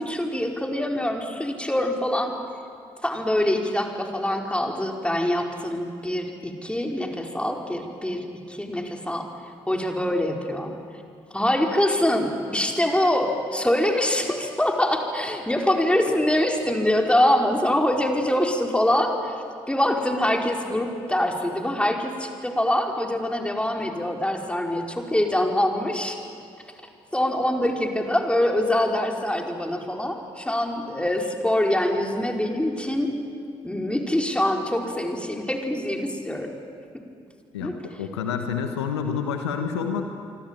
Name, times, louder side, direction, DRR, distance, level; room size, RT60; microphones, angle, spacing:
voice 1, 0.0-2.3 3.0-9.3 9.7-10.8 11.3-26.2 27.1-33.2 33.6-36.5 37.6-37.8, left 1 dB, 10° left, 2 dB, 4.8 m, -24 dB
voice 2, 38.0-40.1, left 6 dB, 85° left, 6 dB, 1.4 m, -28 dB
26.0 x 25.5 x 9.1 m, 2.3 s
figure-of-eight pair, 40°, 14 cm